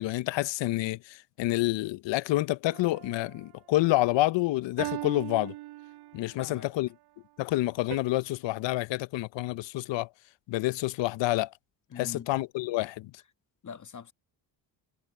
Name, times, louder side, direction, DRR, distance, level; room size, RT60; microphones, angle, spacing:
voice 1, 0.0-5.5 6.1-6.9 7.4-10.1 10.5-11.5 12.0-13.1, left 17 dB, 70° left, 0.7 m, -28 dB
sound 1, 2.7-3.4 4.8-6.4 7.9-8.0, right 18 dB, 60° right, 0.5 m, -39 dB
voice 2, 6.3-6.7 11.9-12.3 13.6-14.1, left 7 dB, 40° left, 1.4 m, -42 dB
cardioid pair, 75°, 45 cm